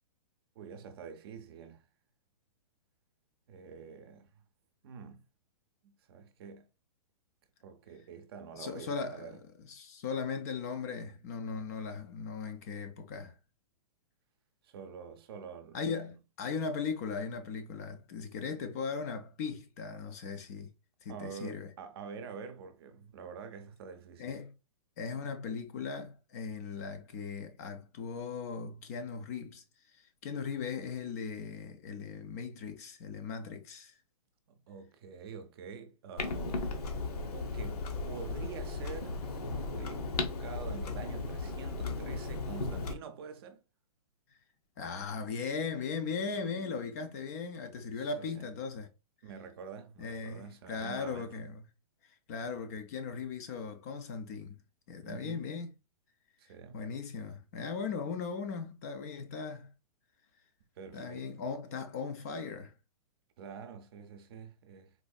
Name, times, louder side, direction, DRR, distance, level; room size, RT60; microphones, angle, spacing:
voice 1, 0.6-1.8 3.5-4.3 4.8-5.2 5.8-6.7 7.6-9.4 14.6-15.9 21.1-24.3 34.5-36.7 37.3-43.6 48.0-48.5 49.2-51.3 55.0-55.5 56.4-56.8 57.2-57.3 60.8-61.4 63.4-64.9, right 6 dB, 40° right, 0.6 m, -47 dB
voice 2, 8.5-13.3 15.7-20.7 21.0-21.7 24.2-24.5 25.0-34.0 44.3-44.4 44.8-48.9 50.0-51.6 52.0-54.6 54.9-55.7 56.4-59.7 60.9-62.7, left 5 dB, 25° left, 0.4 m, -38 dB
Clock, 36.2-42.9, left 3 dB, 85° left, 0.9 m, -36 dB
4.1 x 2.6 x 2.3 m
hypercardioid pair, 160°, 19 cm